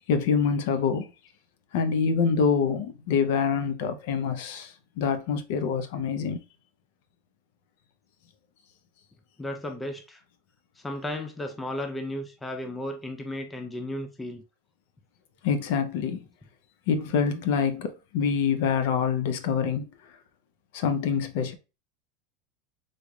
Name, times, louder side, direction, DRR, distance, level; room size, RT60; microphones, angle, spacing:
voice 1, 0.1-1.1 1.7-6.4 15.4-16.2 16.9-19.9 20.7-21.5, left 6 dB, 55° left, 0.5 m, -26 dB
voice 2, 9.4-10.2 10.8-14.4, left 1 dB, 5° left, 0.3 m, -34 dB
3.8 x 3.2 x 2.2 m
supercardioid pair, 180°, 0 cm